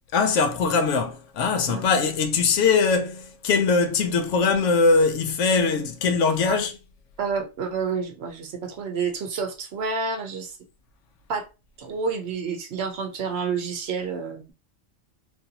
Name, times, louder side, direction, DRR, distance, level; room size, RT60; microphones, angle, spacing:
voice 1, 0.1-6.7, left 4 dB, 75° left, 0.9 m, -21 dB
voice 2, 7.2-10.6 11.3-11.5 11.8-14.5, right 5 dB, 60° right, 0.8 m, -29 dB
3.2 x 2.5 x 2.7 m
omnidirectional pair, 1.3 m